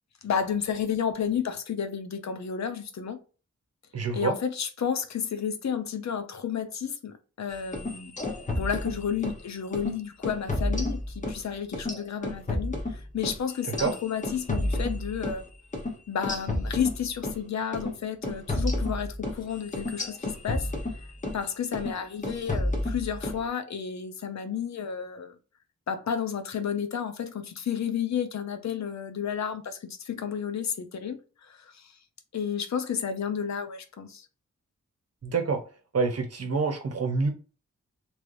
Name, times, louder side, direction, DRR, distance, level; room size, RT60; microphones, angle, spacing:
voice 1, 0.2-3.2 4.1-8.1 8.6-15.4 16.1-21.0 21.3-25.4 25.9-31.9 32.3-34.3, left 7 dB, 70° left, 0.6 m, -32 dB
voice 2, 3.9-4.3 13.8-13.9 35.2-35.6 35.9-37.3, right 4 dB, 55° right, 0.9 m, -26 dB
sound 1, 7.6-9.4 9.7-9.9 10.2-11.4 11.7-15.4 15.7-15.9 16.2-17.4 17.7-17.9 18.2-21.4 21.7-22.0 22.2-23.4, left 1 dB, 25° left, 0.9 m, -31 dB
3.2 x 3.0 x 2.5 m
wide cardioid pair, 130°, 29 cm